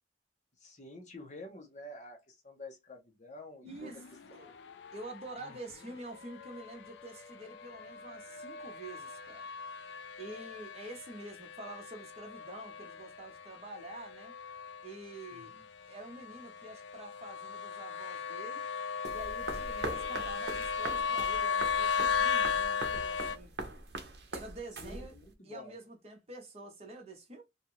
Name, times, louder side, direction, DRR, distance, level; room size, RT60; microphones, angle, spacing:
voice 1, 0.6-3.9 5.4-5.6 15.3-15.6 24.8-25.7, left 1 dB, 45° left, 0.8 m, -49 dB
voice 2, 3.6-4.5 4.9-9.4 10.2-14.3 14.8-15.5 15.8-18.6 19.0-23.5 24.3-25.1 25.4-27.4, right 2 dB, 35° right, 0.8 m, -47 dB
sound 1, 3.7-23.4, left 6 dB, 85° left, 0.4 m, -37 dB
sound 2, 19.0-25.3, right 2 dB, 65° right, 0.7 m, -42 dB
2.6 x 2.4 x 2.8 m
head